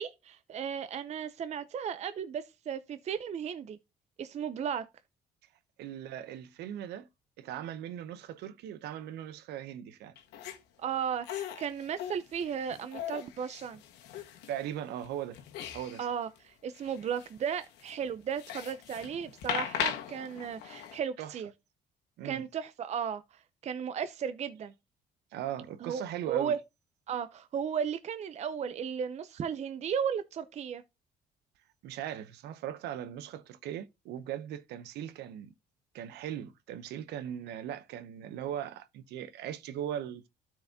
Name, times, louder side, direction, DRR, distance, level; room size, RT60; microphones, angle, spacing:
voice 1, 0.0-3.8 4.2-4.9 10.8-13.8 16.0-21.5 22.2-24.7 25.8-26.0 26.3-26.6 27.1-30.8, right 7 dB, 40° right, 0.6 m, -35 dB
voice 2, 5.8-7.1 7.4-10.2 14.5-15.4 15.7-16.1 21.2-21.3 22.2-22.5 25.3-26.6 31.8-35.5 35.9-40.3, right 10 dB, 80° right, 0.8 m, -39 dB
sound 1, 10.2-10.6 11.2-14.6 15.0-16.1 16.4-16.5 16.7-21.0, left 10 dB, 85° left, 1.4 m, -39 dB
13.0 x 4.7 x 2.7 m
cardioid pair, 110°, 17 cm